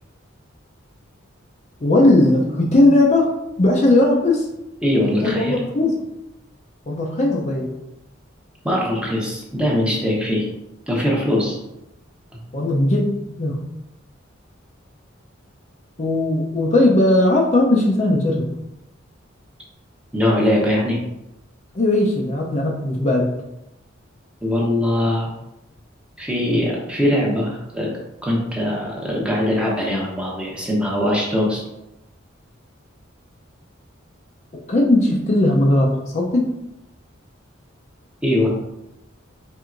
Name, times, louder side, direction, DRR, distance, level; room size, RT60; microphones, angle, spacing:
voice 1, 1.8-4.5 5.2-5.9 6.9-7.7 12.5-13.6 16.0-18.5 21.7-23.3 34.7-36.5, left 1 dB, 35° left, -2 dB, 0.5 m, -18 dB
voice 2, 4.8-5.6 8.6-10.5 10.9-11.6 12.3-12.4 20.1-21.0 24.4-25.3 26.2-27.9 28.2-31.6 38.2-38.5, left 1 dB, 5° right, -3 dB, 0.8 m, -21 dB
4.5 x 3.3 x 2.5 m, 0.88 s
head